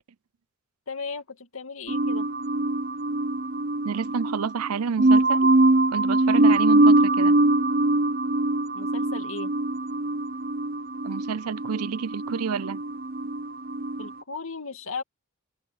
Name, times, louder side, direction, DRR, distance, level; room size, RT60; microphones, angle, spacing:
voice 1, 0.9-2.3 8.7-9.5 14.0-15.0, left 4 dB, 65° left, 2.5 m, -36 dB
sound 1, 1.9-14.1, right 2 dB, 40° right, 0.6 m, -23 dB
voice 2, 3.8-5.5 5.9-7.3 11.0-12.8, right 6 dB, 85° right, 0.5 m, -29 dB
open air
head